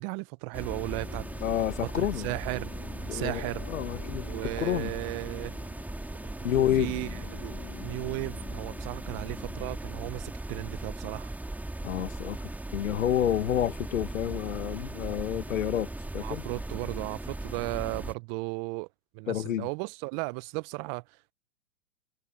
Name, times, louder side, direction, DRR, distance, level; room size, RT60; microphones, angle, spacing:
voice 1, 0.0-1.2 1.8-2.7 3.1-3.7 4.3-5.6 6.4-11.3 16.2-18.9 19.1-21.3, right 31 dB, 35° right, 0.9 m, -35 dB
sound 1, 0.5-18.1, right 2 dB, 5° right, 2.7 m, -38 dB
sound 2, 0.7-9.8, left 21 dB, 35° left, 2.8 m, -48 dB
voice 2, 1.4-2.3 3.1-3.4 3.7-4.3 4.6-4.9 6.4-6.9 11.8-16.4 19.3-19.7, left 11 dB, 70° left, 1.6 m, -29 dB
hypercardioid pair, 110°, 41 cm